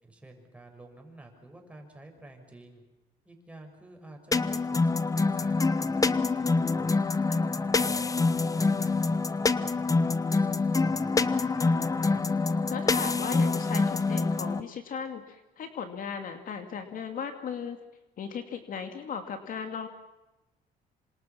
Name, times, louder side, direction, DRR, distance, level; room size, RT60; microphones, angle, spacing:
voice 1, 0.0-2.8 3.2-7.1 7.5-12.2, right 2 dB, 5° right, 3 dB, 6.5 m, -50 dB
sound 1, 4.3-14.6, left 3 dB, 20° left, 1.0 m, -26 dB
voice 2, 12.7-17.8 18.2-19.9, left 7 dB, 55° left, 6 dB, 2.5 m, -37 dB
27.5 x 26.0 x 6.0 m, 1.0 s
cardioid pair, 110°, 17 cm